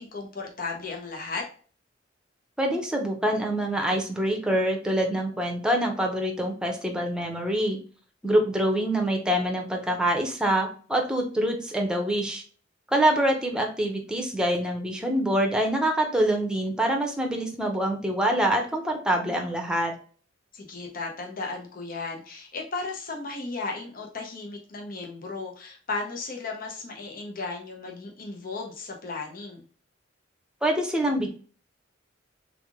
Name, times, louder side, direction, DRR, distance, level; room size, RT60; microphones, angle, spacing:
voice 1, 0.0-1.5 20.5-29.6, left 3 dB, 50° left, 1 dB, 0.9 m, -35 dB
voice 2, 2.6-7.8 8.2-12.4 12.9-19.9 30.6-31.3, right 1 dB, 5° right, 2 dB, 0.8 m, -25 dB
3.6 x 3.5 x 3.6 m, 0.42 s
head